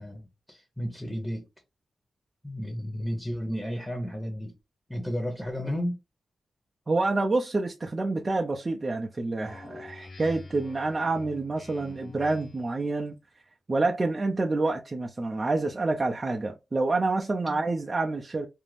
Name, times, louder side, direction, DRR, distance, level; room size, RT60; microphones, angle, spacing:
voice 1, 0.0-1.5 2.4-4.5 4.9-6.0 17.5-17.6, equal, 5° left, 0.9 m, -33 dB
voice 2, 6.9-13.2 13.7-18.5, right 3 dB, 35° right, 0.5 m, -28 dB
Speech synthesizer, 9.4-12.8, left 3 dB, 55° left, 0.9 m, -46 dB
2.5 x 2.1 x 3.3 m
cardioid pair, 60°, 0 cm